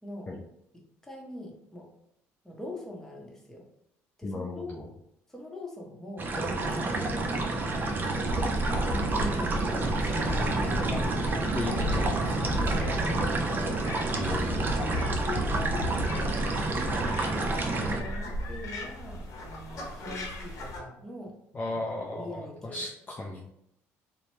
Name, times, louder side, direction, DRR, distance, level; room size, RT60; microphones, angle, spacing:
voice 1, 0.0-0.3 0.7-1.9 2.4-3.7 4.2-4.7 5.3-7.7 8.2-10.8 12.5-13.9 14.2-14.4 14.9-16.3 16.7-21.4 21.7-22.8, left 1 dB, 5° left, -2 dB, 0.9 m, -42 dB
voice 2, 4.2-4.9 10.2-10.6 11.5-12.4 14.1-14.5 21.5-23.4, left 2 dB, 25° left, -1 dB, 0.4 m, -36 dB
sound 1, 6.2-18.0, right 2 dB, 35° right, 0.5 m, -29 dB
sound 2, 7.7-20.8, equal, 60° left, 0.8 m, -34 dB
2.8 x 2.1 x 2.9 m, 0.77 s
supercardioid pair, 75°, 6 cm